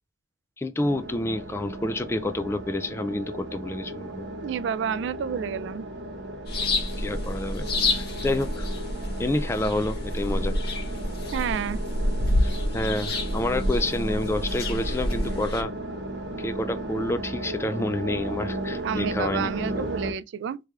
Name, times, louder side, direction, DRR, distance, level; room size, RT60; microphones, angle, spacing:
voice 1, 0.6-4.2 7.0-8.7 9.2-10.6 12.4-15.7 16.4-19.5 19.8-19.9, left 1 dB, 15° left, 0.3 m, -29 dB
sound 1, 0.8-20.1, right 1 dB, 65° right, 1.0 m, -35 dB
voice 2, 4.4-5.8 11.3-11.8 18.8-20.6, right 7 dB, 80° right, 0.3 m, -30 dB
sound 2, 6.5-15.6, left 1 dB, 55° left, 1.4 m, -28 dB
3.3 x 3.3 x 3.5 m
head